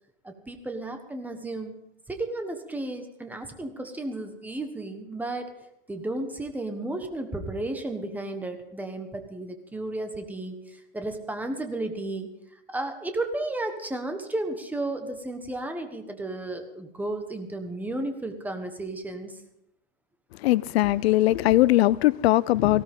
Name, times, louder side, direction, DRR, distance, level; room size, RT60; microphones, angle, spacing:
voice 1, 0.2-1.8 2.1-5.5 5.9-12.3 12.7-19.4, right 2 dB, 5° right, 1.4 m, -33 dB
voice 2, 20.4-22.8, left 16 dB, 80° left, 0.6 m, -20 dB
19.0 x 16.0 x 3.7 m
supercardioid pair, 150°, 31 cm